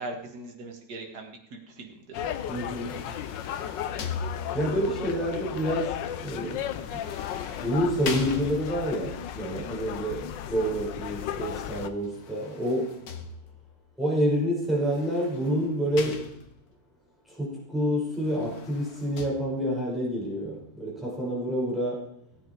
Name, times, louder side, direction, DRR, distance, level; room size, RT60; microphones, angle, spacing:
voice 1, 0.0-2.2, right 2 dB, 60° right, 2 dB, 2.2 m, -40 dB
sound 1, 2.1-11.9, left 10 dB, 80° left, 1.4 m, -35 dB
sound 2, 2.5-4.9 6.8-9.0 11.9-13.8 14.8-16.7 18.1-19.3, left 5 dB, 60° left, 1.5 m, -40 dB
voice 2, 2.5-3.1 4.5-7.0 7.6-12.9 14.0-16.3 17.3-22.1, equal, ahead, -5 dB, 5.4 m, -28 dB
16.0 x 8.7 x 4.7 m, 0.73 s
omnidirectional pair, 2.0 m